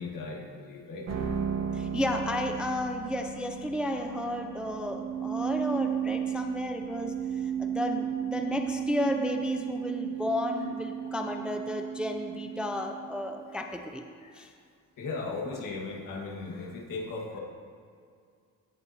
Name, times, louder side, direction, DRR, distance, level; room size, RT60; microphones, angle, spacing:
voice 1, 0.0-1.3 14.2-14.4 15.0-17.4, left 3 dB, 75° left, 0 dB, 1.6 m, -37 dB
sound 1, 1.1-13.4, right 8 dB, 50° right, 1.1 m, -34 dB
voice 2, 1.7-7.1 7.6-14.0 14.4-14.5, left 1 dB, 5° right, 4 dB, 0.3 m, -32 dB
17.0 x 6.7 x 2.8 m, 2.3 s
cardioid pair, 160°, 33 cm